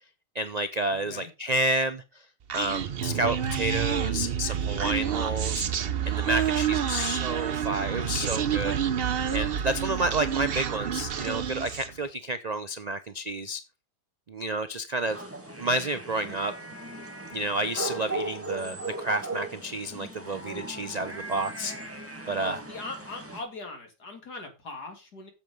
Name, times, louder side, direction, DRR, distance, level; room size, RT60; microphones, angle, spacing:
voice 1, 0.3-2.0 2.5-5.6 6.1-8.8 9.3-13.6 14.3-15.2 15.6-16.5 17.3-21.7 22.3-22.6, right 1 dB, 70° right, 0.4 m, -30 dB
voice 2, 0.9-1.3 22.3-25.3, left 3 dB, 70° left, 3.0 m, -40 dB
Human voice, 2.5-12.0, right 9 dB, 50° right, 0.8 m, -28 dB
sound 1, 15.1-23.4, right 2 dB, 10° right, 1.7 m, -38 dB
8.4 x 7.9 x 5.3 m
omnidirectional pair, 1.7 m